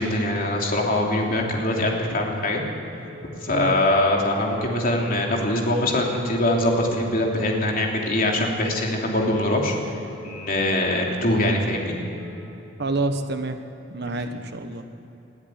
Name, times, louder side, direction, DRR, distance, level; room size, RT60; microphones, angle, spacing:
voice 1, 0.0-2.6 3.4-12.0 14.0-14.2, left 1 dB, 45° left, 0 dB, 3.1 m, -23 dB
sound 1, 3.2-3.4 3.8-4.1 4.5-4.8 5.2-5.4 5.9-6.1 6.6-6.8 7.3-7.5 8.0-8.2 8.7-8.9 9.4-9.6 10.1-10.3 10.7-11.0 11.4-11.6 12.1-12.3, left 2 dB, 40° right, 3.2 m, -44 dB
voice 2, 12.8-13.6 13.9-14.8, right 2 dB, 60° right, 8 dB, 1.2 m, -27 dB
20.5 x 13.5 x 9.5 m, 3.0 s
head